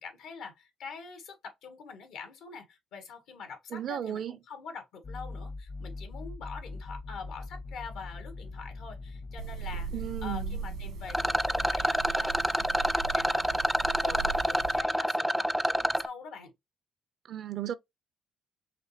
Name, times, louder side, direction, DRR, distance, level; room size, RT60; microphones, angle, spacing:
voice 1, 0.0-16.5, left 5 dB, 90° left, 1.8 m, -45 dB
voice 2, 3.7-4.4 9.9-10.6 17.3-17.7, right 10 dB, 65° right, 0.4 m, -35 dB
sound 1, 5.0-11.9, left 3 dB, 40° left, 0.7 m, -42 dB
sound 2, 9.4-14.8, right 6 dB, 85° right, 1.3 m, -39 dB
Rattle, 11.1-16.1, equal, ahead, 0.4 m, -28 dB
5.0 x 3.2 x 2.7 m
cardioid pair, 90°, 0 cm